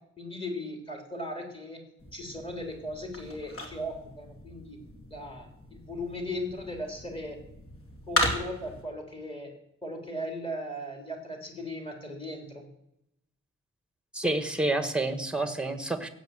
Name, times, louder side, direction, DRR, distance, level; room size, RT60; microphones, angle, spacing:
voice 1, 0.2-1.8 2.1-4.8 5.1-7.4 8.1-9.5 9.8-12.7, left 1 dB, 15° left, 2 dB, 3.4 m, -37 dB
sound 1, 2.0-8.8, left 1 dB, 45° left, 3.1 m, -36 dB
voice 2, 14.1-16.1, right 2 dB, 5° right, 9 dB, 1.4 m, -29 dB
16.0 x 8.4 x 7.8 m, 0.83 s
wide cardioid pair, 140°, 32 cm